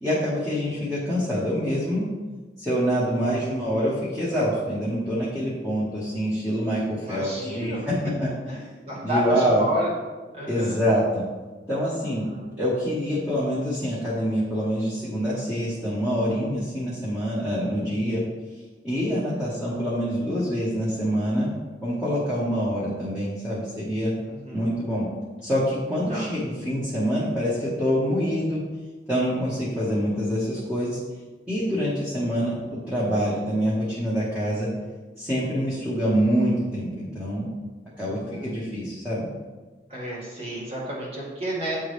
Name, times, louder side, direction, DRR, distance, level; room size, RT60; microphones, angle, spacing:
voice 1, 0.0-2.0 2.6-8.3 9.0-9.6 10.5-11.2 11.7-12.3 12.6-18.2 18.8-21.5 21.8-24.1 24.5-25.0 25.4-28.6 29.1-31.0 31.5-34.7 35.2-37.5 38.0-39.3, equal, 5° right, -10 dB, 1.2 m, -25 dB
voice 2, 7.0-9.9 10.3-10.8 12.0-12.4 17.4-18.0 24.2-24.8 26.1-26.3 38.0-38.5 39.9-41.8, equal, 35° right, -5 dB, 1.9 m, -32 dB
9.1 x 3.6 x 3.3 m, 1.3 s
head